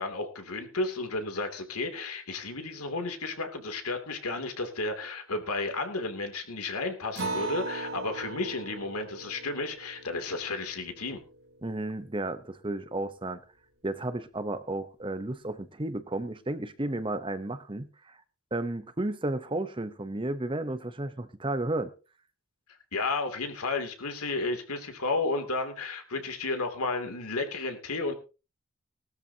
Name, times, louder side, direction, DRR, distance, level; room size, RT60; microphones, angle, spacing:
voice 1, 0.0-11.2 22.9-28.1, left 3 dB, 85° left, 2.8 m, -32 dB
Acoustic guitar, 7.2-12.0, right 2 dB, 65° right, 3.5 m, -39 dB
voice 2, 11.6-13.4 13.8-18.2 18.5-21.9, right 2 dB, 20° right, 0.8 m, -33 dB
19.0 x 12.5 x 2.8 m
head